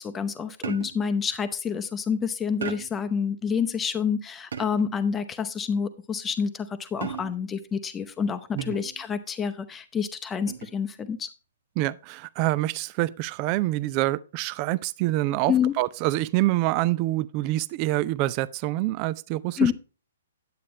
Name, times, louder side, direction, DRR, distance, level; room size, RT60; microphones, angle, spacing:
voice 1, 0.0-11.3 15.5-15.7 19.6-19.7, left 6 dB, 15° left, 0.7 m, -28 dB
sound 1, 0.6-1.1 2.6-3.1 4.5-5.0 7.0-7.6 8.6-9.0 10.5-10.8, right 7 dB, 60° right, 0.8 m, -37 dB
voice 2, 11.8-19.7, right 17 dB, 30° right, 0.4 m, -26 dB
9.3 x 8.6 x 3.1 m
figure-of-eight pair, 120°, 0 cm